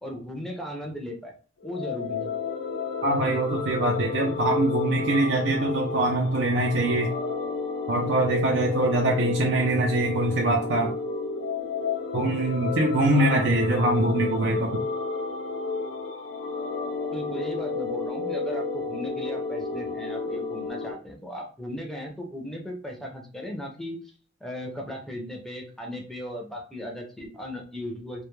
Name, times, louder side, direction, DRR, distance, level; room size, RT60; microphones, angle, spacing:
voice 1, 0.0-1.3 1.6-2.3 9.1-9.5 13.1-13.8 17.1-24.1 24.4-28.2, equal, ahead, 0 dB, 0.5 m, -36 dB
sound 1, 1.6-20.9, left 4 dB, 65° left, 0.4 m, -31 dB
voice 2, 3.0-7.1 7.9-10.9 12.1-14.8, right 2 dB, 75° right, 0 dB, 0.4 m, -23 dB
2.2 x 2.1 x 3.0 m, 0.41 s
head